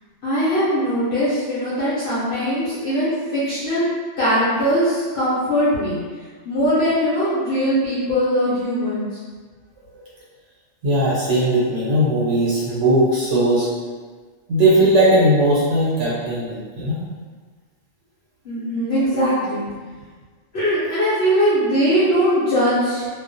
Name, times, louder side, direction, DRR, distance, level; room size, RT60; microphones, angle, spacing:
voice 1, 0.2-3.8 4.2-6.0 6.4-9.1 16.2-16.3 18.4-19.6 20.5-23.1, equal, 60° left, -11 dB, 0.9 m, -20 dB
voice 2, 10.8-13.7 14.5-17.0, right 1 dB, 80° right, -7 dB, 1.0 m, -18 dB
2.3 x 2.1 x 2.5 m, 1.5 s
omnidirectional pair, 1.3 m